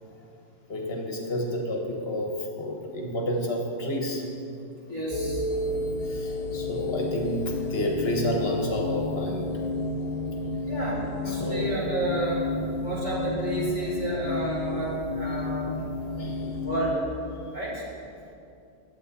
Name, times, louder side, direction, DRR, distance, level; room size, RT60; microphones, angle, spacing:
voice 1, 0.7-4.2 4.8-5.0 5.5-9.5 11.2-11.7 15.3-15.4 16.1-16.6, left 1 dB, 60° left, 0 dB, 1.2 m, -30 dB
voice 2, 4.9-5.4 10.6-12.4 12.8-15.7 16.6-17.0 17.5-17.8, right 1 dB, 40° right, -8 dB, 2.4 m, -30 dB
sound 1, 5.1-16.9, left 2 dB, 40° left, 0.8 m, -31 dB
9.2 x 7.9 x 4.0 m, 2.6 s
omnidirectional pair, 1.2 m